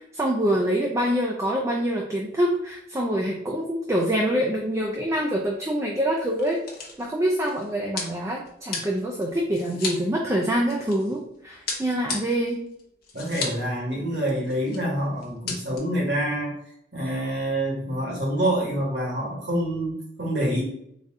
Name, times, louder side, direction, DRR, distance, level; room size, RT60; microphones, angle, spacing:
voice 1, 0.1-6.6 7.0-12.6, equal, 15° right, -1 dB, 0.4 m, -25 dB
sound 1, 4.7-4.9 5.2-5.3 6.1-11.2 11.7-13.7 14.0-14.1 14.3-14.8 15.2-15.8, left 4 dB, 50° left, 0.8 m, -35 dB
voice 2, 13.1-16.5 16.9-20.6, right 1 dB, 60° right, -3 dB, 1.3 m, -26 dB
4.0 x 2.3 x 3.6 m, 0.72 s
head